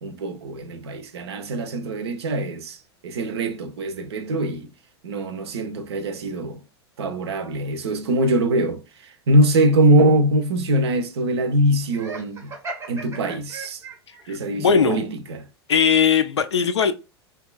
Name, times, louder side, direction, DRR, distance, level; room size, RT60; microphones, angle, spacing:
voice 1, 0.0-2.8 3.0-4.7 5.0-6.6 7.0-12.5 12.9-13.8 14.3-15.4, right 1 dB, 75° right, 0.5 m, -22 dB
Laughter, 11.9-14.2, right 3 dB, 20° right, 0.6 m, -36 dB
voice 2, 14.3-15.0 15.7-16.9, left 6 dB, 85° left, 0.4 m, -19 dB
2.8 x 2.2 x 2.2 m
hypercardioid pair, 90°, 14 cm